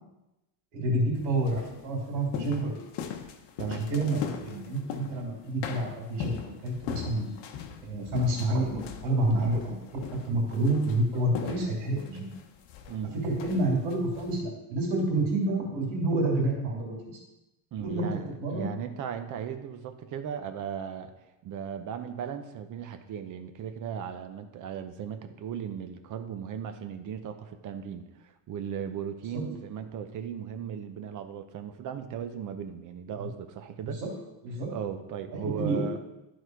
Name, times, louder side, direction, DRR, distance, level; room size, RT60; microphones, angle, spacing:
voice 1, 0.7-2.7 3.6-7.3 7.8-12.3 13.1-17.2 17.8-18.1 18.4-18.7 29.3-29.4 33.8-34.1 34.4-34.7 35.3-36.0, right 1 dB, 85° right, -4 dB, 3.0 m, -29 dB
sound 1, 1.1-5.3 5.6-14.4, left 8 dB, 65° left, 1.0 m, -40 dB
voice 2, 12.9-13.3 17.7-21.1 21.4-34.0 34.7-36.0, right 8 dB, 45° right, 8 dB, 0.8 m, -37 dB
12.0 x 4.2 x 4.7 m, 0.95 s
cardioid pair, 150°, 45 cm